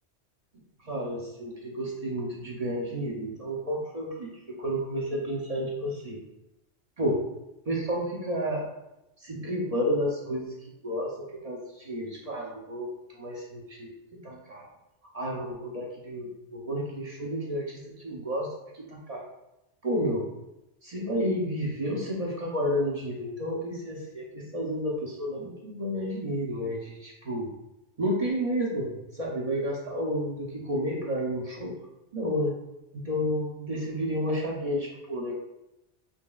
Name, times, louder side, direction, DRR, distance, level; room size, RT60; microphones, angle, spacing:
voice 1, 0.5-6.2 7.0-7.2 7.7-8.7 9.2-14.7 15.1-19.2 19.8-20.3 20.8-27.5 28.0-31.8 32.1-32.6 32.9-35.3, equal, 40° right, -3 dB, 0.7 m, -31 dB
5.3 x 2.8 x 2.3 m, 0.90 s
omnidirectional pair, 1.2 m